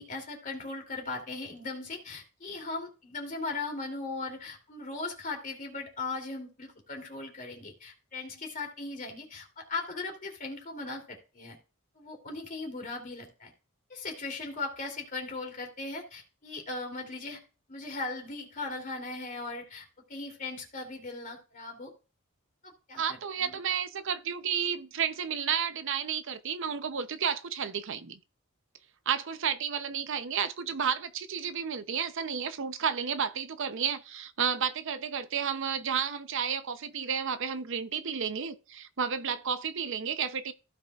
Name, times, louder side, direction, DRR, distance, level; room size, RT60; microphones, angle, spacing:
voice 1, 0.0-11.6 11.9-13.5 13.9-17.4 17.7-21.9 22.6-23.6, left 3 dB, 40° left, 2.9 m, -38 dB
voice 2, 23.0-28.2 29.1-40.5, right 7 dB, 65° right, 0.7 m, -32 dB
15.5 x 5.4 x 2.4 m
head